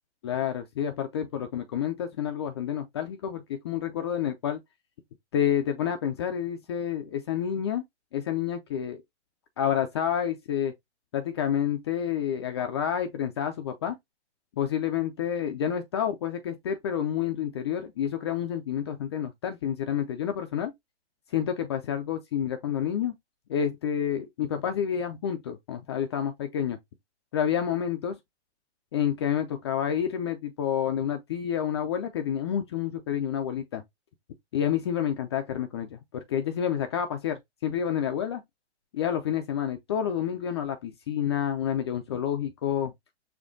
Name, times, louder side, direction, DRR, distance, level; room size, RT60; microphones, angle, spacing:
voice 1, 0.2-4.6 5.3-7.8 8.1-9.0 9.6-10.7 11.1-14.0 14.6-20.7 21.3-23.1 23.5-26.8 27.3-28.2 28.9-33.8 34.5-38.4 38.9-42.9, left 9 dB, 25° left, 0.4 m, -29 dB
6.3 x 2.3 x 2.5 m
figure-of-eight pair, 120°, 35 cm